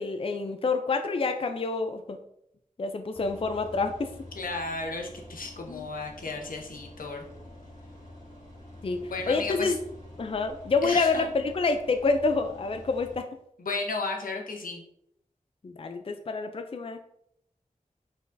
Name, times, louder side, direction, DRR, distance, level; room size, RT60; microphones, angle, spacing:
voice 1, 0.0-2.2 2.8-4.1 5.7-5.9 8.8-9.8 10.2-13.3 15.6-17.0, left 4 dB, 40° left, 6 dB, 0.4 m, -28 dB
sound 1, 3.1-13.2, left 1 dB, 60° left, 1.9 m, -47 dB
voice 2, 4.3-7.2 9.1-9.8 10.8-11.3 13.6-14.8, left 3 dB, 90° left, 2 dB, 0.8 m, -34 dB
5.2 x 3.9 x 2.6 m, 0.74 s
wide cardioid pair, 55°, 14 cm